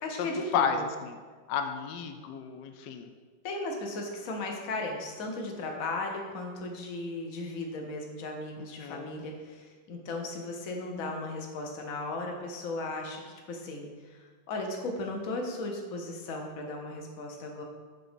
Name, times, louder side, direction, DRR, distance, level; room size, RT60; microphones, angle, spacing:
voice 1, 0.0-0.8 3.4-13.2 13.5-17.6, left 2 dB, 50° left, 1 dB, 1.2 m, -36 dB
voice 2, 0.5-1.2 1.5-3.1 8.6-9.2, left 6 dB, 75° left, 6 dB, 1.1 m, -32 dB
8.0 x 3.8 x 5.1 m, 1.5 s
omnidirectional pair, 2.1 m